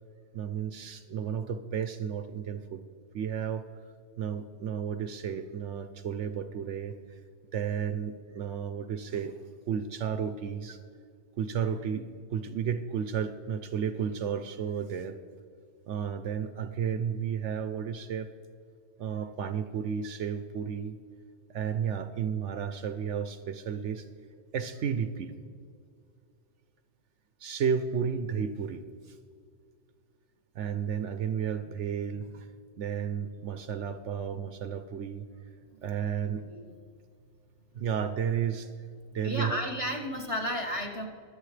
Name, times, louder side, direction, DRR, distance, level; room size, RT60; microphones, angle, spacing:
voice 1, 0.3-2.8 3.1-3.7 4.2-6.9 7.5-9.4 9.7-10.8 11.4-15.1 15.9-18.3 19.0-21.0 21.5-24.1 24.5-25.3 27.4-29.2 30.5-32.5 32.8-35.3 35.8-36.4 37.7-38.7 39.1-39.6, right 7 dB, 65° right, 9 dB, 0.9 m, -32 dB
voice 2, 39.2-41.1, equal, 25° left, 2 dB, 1.4 m, -33 dB
24.0 x 8.2 x 3.3 m, 2.3 s
omnidirectional pair, 1.4 m